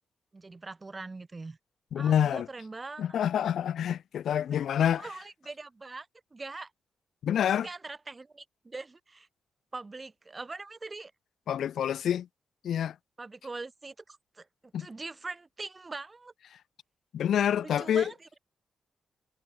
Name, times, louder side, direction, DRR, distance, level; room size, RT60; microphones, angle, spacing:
voice 1, 0.3-1.6 2.0-3.2 4.9-6.7 7.4-9.3 9.7-11.1 13.2-16.3 17.6-18.4, right 3 dB, 25° right, 6.2 m, -42 dB
voice 2, 1.9-2.5 3.0-5.1 7.2-7.7 11.5-12.3 12.6-13.0 14.7-14.9 17.1-18.1, left 9 dB, 80° left, 2.5 m, -27 dB
wide cardioid pair, 130°, 0 cm